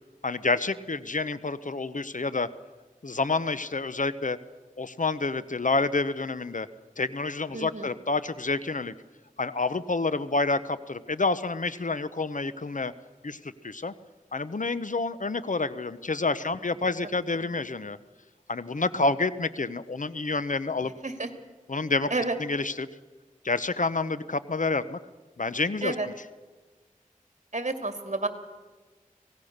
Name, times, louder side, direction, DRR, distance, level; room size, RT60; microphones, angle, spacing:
voice 1, 0.2-2.5 3.0-4.4 4.8-6.7 7.0-8.9 9.4-12.9 13.2-13.9 14.3-18.0 18.5-20.9 21.7-22.1 22.4-22.9 23.4-25.0 25.4-26.1, left 3 dB, 65° left, 14 dB, 0.9 m, -28 dB
voice 2, 7.5-8.0 21.0-21.3 22.1-22.4 25.8-26.1 27.5-28.3, right 2 dB, 55° right, 7 dB, 2.3 m, -30 dB
25.0 x 18.0 x 6.7 m, 1.3 s
wide cardioid pair, 40°, 14 cm